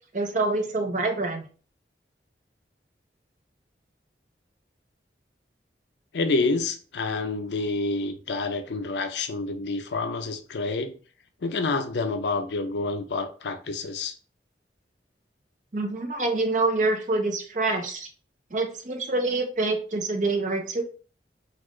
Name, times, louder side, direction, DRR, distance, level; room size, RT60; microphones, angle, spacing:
voice 1, 0.1-1.4 15.7-18.1 18.5-20.8, right 2 dB, 45° right, 0.6 m, -26 dB
voice 2, 6.1-10.9 11.4-14.2, left 3 dB, 75° left, 0.5 m, -28 dB
4.1 x 2.4 x 3.0 m
head